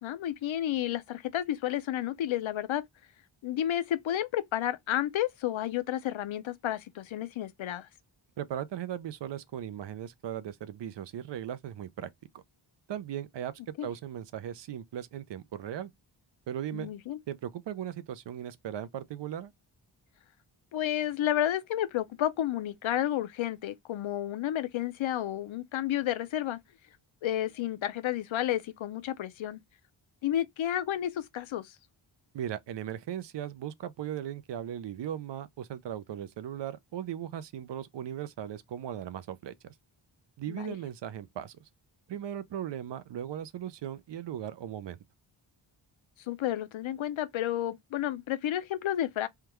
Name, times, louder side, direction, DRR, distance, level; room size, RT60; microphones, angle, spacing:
voice 1, 0.0-2.8 3.4-7.9 13.8-13.9 16.7-17.2 20.7-26.6 27.2-29.6 30.2-31.8 40.5-40.8 46.3-49.3, left 12 dB, 90° left, 0.6 m, -31 dB
voice 2, 8.4-12.1 12.9-15.9 16.5-16.9 17.3-19.5 32.3-39.7 40.4-41.6 42.1-45.0, right 10 dB, 65° right, 0.5 m, -38 dB
3.5 x 2.2 x 2.9 m
wide cardioid pair, 165°, 46 cm